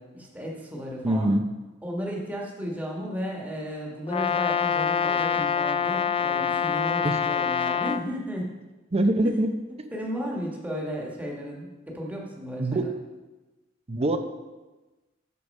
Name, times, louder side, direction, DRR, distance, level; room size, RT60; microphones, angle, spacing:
voice 1, 0.0-1.3 1.8-8.5 9.2-9.3 9.9-12.9, equal, 10° right, -3 dB, 1.5 m, -34 dB
voice 2, 1.0-1.5 7.0-7.2 8.9-9.5 10.2-10.4 12.6-12.9 13.9-14.2, right 1 dB, 30° right, 8 dB, 0.6 m, -24 dB
Brass instrument, 4.1-8.1, left 8 dB, 25° left, 0.3 m, -25 dB
8.4 x 6.4 x 5.3 m, 1.1 s
head